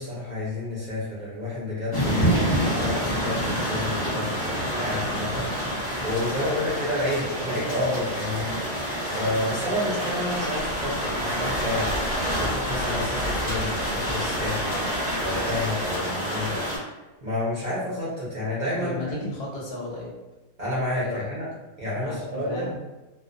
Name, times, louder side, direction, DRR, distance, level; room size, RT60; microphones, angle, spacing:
voice 1, 0.0-5.5 6.0-8.5 9.1-12.0 12.3-14.8 15.2-16.7 17.2-19.0 20.6-21.5 21.8-22.6, left 1 dB, 45° right, -8 dB, 0.6 m, -30 dB
sound 1, 1.9-16.8, equal, 25° left, 0.8 m, -27 dB
voice 2, 18.8-20.1 21.0-21.3 21.9-22.8, left 1 dB, 55° left, -4 dB, 0.7 m, -34 dB
2.3 x 2.1 x 2.5 m, 1.1 s
omnidirectional pair, 1.5 m